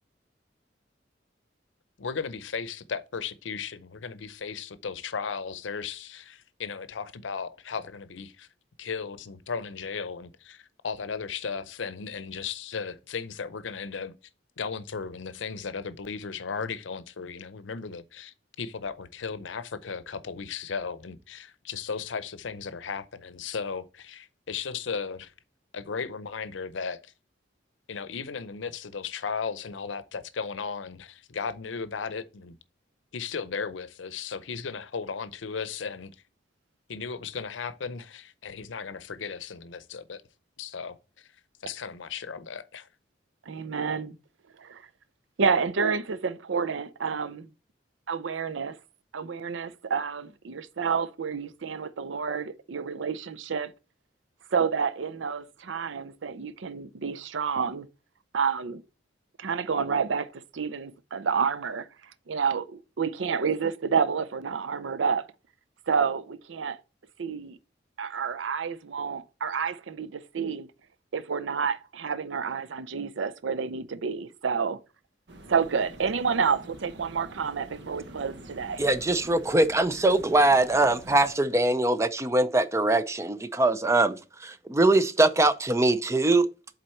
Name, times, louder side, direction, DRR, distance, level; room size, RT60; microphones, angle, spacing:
voice 1, 2.0-8.5 8.8-14.1 14.6-25.3 25.7-27.1 27.9-32.6 33.1-36.1 36.9-40.2 40.6-41.0 41.6-42.9, left 5 dB, 85° left, 0.6 m, -36 dB
voice 2, 43.5-44.2 44.6-44.8 45.4-47.5 48.1-48.8 49.1-53.7 54.5-57.9 58.3-58.8 59.4-61.9 62.3-65.2 65.9-66.8 67.2-67.6 68.0-70.7 71.1-74.8 75.5-78.8, right 6 dB, 85° right, 0.5 m, -29 dB
sound 1, 75.3-81.3, right 1 dB, 65° right, 1.0 m, -47 dB
voice 3, 78.8-86.5, right 2 dB, 15° right, 0.5 m, -22 dB
7.7 x 4.0 x 4.3 m
head